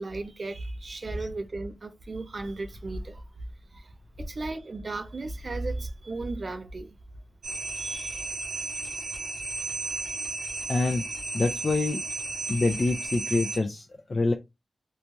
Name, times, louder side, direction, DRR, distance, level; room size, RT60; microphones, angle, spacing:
voice 1, 0.0-3.2 3.7-7.0 7.7-8.3, right 2 dB, 40° right, 0.4 m, -35 dB
sound 1, 7.4-13.6, right 3 dB, 65° right, 0.8 m, -34 dB
voice 2, 10.7-11.1 11.3-12.0 12.5-14.3, left 3 dB, 35° left, 0.4 m, -26 dB
3.0 x 2.2 x 2.6 m
wide cardioid pair, 140°, 0 cm